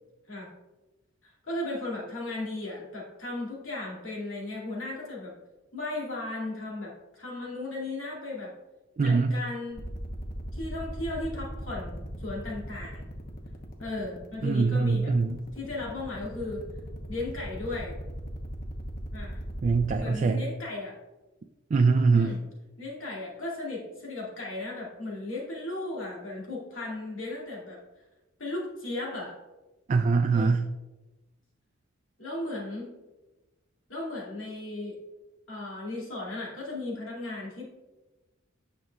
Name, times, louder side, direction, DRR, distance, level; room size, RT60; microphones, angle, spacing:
voice 1, 1.5-5.3 5.7-8.5 9.0-9.9 10.5-13.1 13.8-15.1 15.5-16.6 17.1-17.9 19.1-19.4 20.0-20.9 22.1-22.4 22.8-27.8 28.4-29.4 30.3-30.6 32.2-32.9 33.9-35.0 35.5-37.6, left 2 dB, 75° left, -5 dB, 2.4 m, -36 dB
voice 2, 9.0-9.3 14.4-15.4 19.6-20.4 21.7-22.4 29.9-30.6, right 4 dB, 40° right, 6 dB, 0.3 m, -23 dB
sound 1, 9.8-20.0, equal, 50° left, 1.0 m, -38 dB
9.3 x 5.8 x 2.3 m, 1.1 s
head